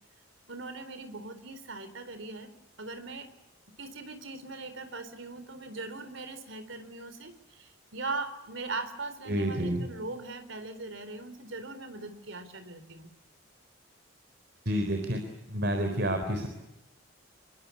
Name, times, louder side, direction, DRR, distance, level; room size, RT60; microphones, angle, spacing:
voice 1, 0.5-3.3 3.8-13.1, right 3 dB, 70° right, 10 dB, 4.1 m, -40 dB
voice 2, 9.3-9.8 14.7-15.2 15.5-16.5, equal, 55° right, 6 dB, 4.0 m, -29 dB
26.5 x 23.0 x 8.5 m, 0.87 s
head